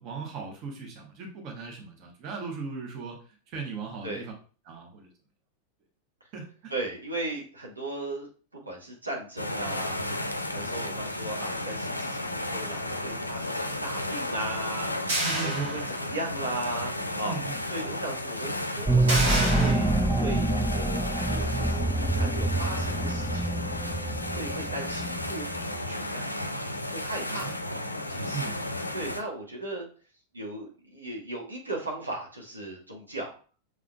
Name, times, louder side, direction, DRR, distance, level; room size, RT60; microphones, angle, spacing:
voice 1, 0.0-3.2 3.5-4.3 4.6-5.1 6.3-6.7 15.2-15.9 17.2-17.6 27.3-27.6 28.3-28.5, right 5 dB, 40° right, 2 dB, 1.0 m, -37 dB
voice 2, 6.7-8.3 8.6-10.0 10.5-16.9 17.2-17.3 17.7-21.8 22.2-23.6 24.3-26.3 26.9-27.5 28.1-28.5 28.9-29.9 30.3-33.3, right 2 dB, 80° right, -2 dB, 1.3 m, -37 dB
sound 1, 9.4-29.2, left 1 dB, 85° left, 0.4 m, -33 dB
sound 2, 15.1-16.4 16.8-16.9 19.1-19.7, right 1 dB, 60° right, 2.1 m, -29 dB
sound 3, 18.9-25.9, right 2 dB, 5° right, 0.3 m, -27 dB
6.2 x 3.6 x 2.3 m, 0.39 s
figure-of-eight pair, 90°, 0 cm